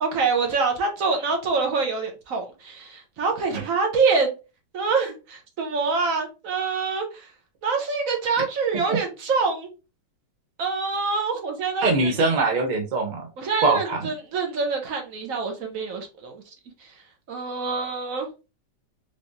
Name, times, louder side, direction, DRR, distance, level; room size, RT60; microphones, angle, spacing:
voice 1, 0.0-4.3 4.7-7.3 7.6-9.7 10.6-12.1 13.4-16.3 17.3-18.3, right 4 dB, 55° right, 1.1 m, -25 dB
voice 2, 11.8-13.3 13.6-14.1, right 3 dB, 90° right, 0.4 m, -22 dB
3.4 x 3.3 x 2.6 m
omnidirectional pair, 2.0 m